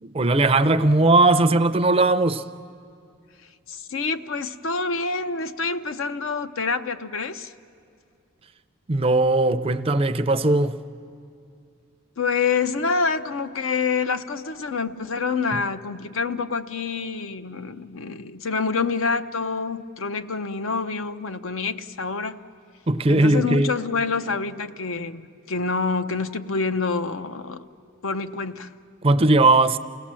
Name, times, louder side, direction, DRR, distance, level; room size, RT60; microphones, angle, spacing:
voice 1, 0.1-2.4 8.9-10.8 22.9-23.7 29.0-29.8, right 2 dB, 25° right, 0.5 m, -18 dB
voice 2, 3.7-7.5 12.2-22.4 23.1-27.7 28.0-28.7, left 4 dB, 70° left, 0.7 m, -27 dB
29.0 x 17.0 x 7.5 m
head